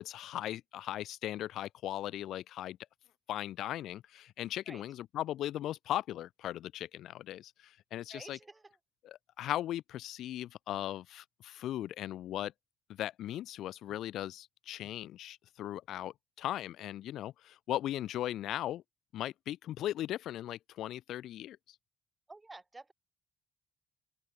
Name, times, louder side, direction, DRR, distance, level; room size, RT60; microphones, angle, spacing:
voice 1, 0.0-2.8 3.3-8.4 9.0-12.5 12.9-18.8 19.1-21.6, left 13 dB, 80° left, 1.8 m, -38 dB
voice 2, 8.1-8.8 22.3-22.9, right 2 dB, 15° right, 7.3 m, -50 dB
open air
cardioid pair, 110°, 0 cm